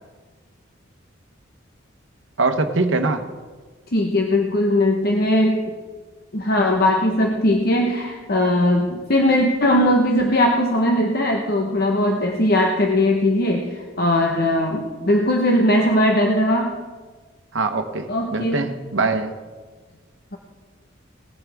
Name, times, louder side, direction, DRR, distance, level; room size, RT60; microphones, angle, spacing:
voice 1, 2.4-3.3 17.5-19.3, right 3 dB, 70° right, 7 dB, 1.0 m, -22 dB
voice 2, 3.9-5.6 6.3-16.8 18.1-18.7, left 1 dB, 50° left, 1 dB, 1.0 m, -19 dB
18.5 x 10.5 x 3.5 m, 1.4 s
head